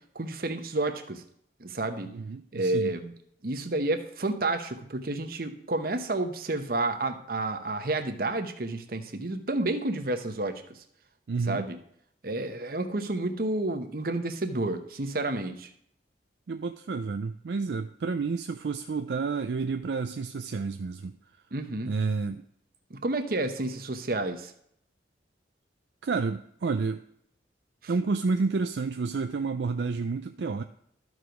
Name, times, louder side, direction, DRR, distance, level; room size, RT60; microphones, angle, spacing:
voice 1, 0.1-1.2 1.6-2.1 2.5-3.1 3.4-10.8 11.5-11.8 12.2-15.7 21.5-21.9 22.9-24.5 27.8-27.9, right 2 dB, 55° right, 0.9 m, -30 dB
voice 2, 2.0-2.9 11.3-11.7 16.5-21.1 21.9-22.4 26.0-27.0 27.9-30.6, right 4 dB, 70° right, 0.4 m, -30 dB
12.5 x 4.8 x 5.1 m
head